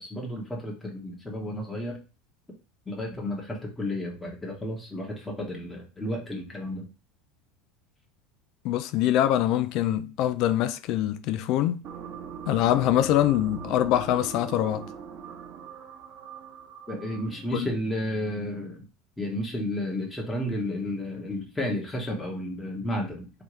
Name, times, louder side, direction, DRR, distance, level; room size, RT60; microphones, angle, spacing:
voice 1, 0.0-2.0 2.8-6.9 16.9-18.9 19.2-23.3, left 1 dB, 10° left, 1.5 m, -32 dB
voice 2, 8.6-11.8 12.5-14.9 17.5-17.7, left 12 dB, 60° left, 0.3 m, -24 dB
sound 1, 11.8-17.5, right 7 dB, 50° right, 0.9 m, -41 dB
3.4 x 2.9 x 3.1 m
hypercardioid pair, 90°, 0 cm